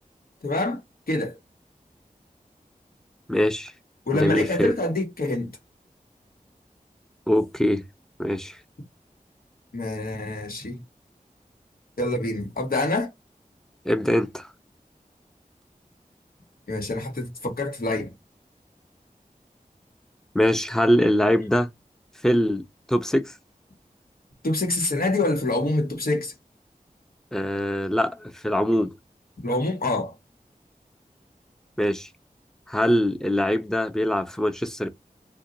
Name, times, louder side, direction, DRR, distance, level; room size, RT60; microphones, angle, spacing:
voice 1, 0.4-0.8 1.1-1.4 4.1-5.5 9.7-10.8 12.0-13.1 16.7-18.1 24.4-26.3 29.4-30.1, left 2 dB, 80° left, 1.2 m, -26 dB
voice 2, 3.3-3.7 4.1-4.7 7.3-7.8 8.2-8.6 13.9-14.5 20.3-21.7 22.2-23.3 27.3-28.9 31.8-32.1 32.7-34.9, equal, 5° left, 0.6 m, -23 dB
2.8 x 2.2 x 3.8 m
wide cardioid pair, 45°, 15 cm